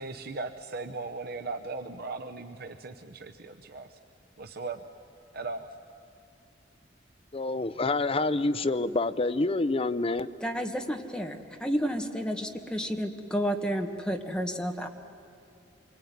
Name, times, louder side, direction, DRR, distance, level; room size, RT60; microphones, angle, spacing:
voice 1, 0.0-4.0 4.4-4.8 5.3-5.7, right 3 dB, 55° right, 5 dB, 0.8 m, -38 dB
voice 2, 7.3-10.3, left 2 dB, 30° left, 13 dB, 0.6 m, -27 dB
voice 3, 10.4-14.9, equal, 5° left, 3 dB, 1.6 m, -31 dB
25.5 x 23.0 x 9.5 m, 2.7 s
head